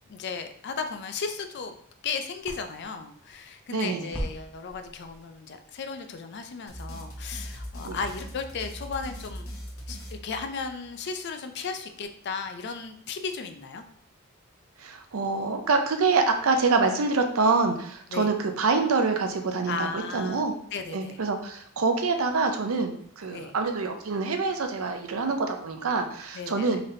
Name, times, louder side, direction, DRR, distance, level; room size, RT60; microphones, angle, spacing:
voice 1, 0.1-1.7 2.0-9.5 9.9-10.0 10.2-13.8 18.1-18.3 19.7-21.2 23.3-23.5 26.3-26.8, left 5 dB, 55° left, 8 dB, 0.4 m, -35 dB
sound 1, 0.6-7.2, equal, 5° left, 0.7 m, -44 dB
voice 2, 3.7-4.1 7.8-8.0 14.8-20.5 20.9-26.8, right 4 dB, 90° right, 5 dB, 0.6 m, -26 dB
sound 2, 6.7-10.9, equal, 80° left, 0.9 m, -40 dB
3.9 x 3.3 x 2.7 m, 0.64 s
head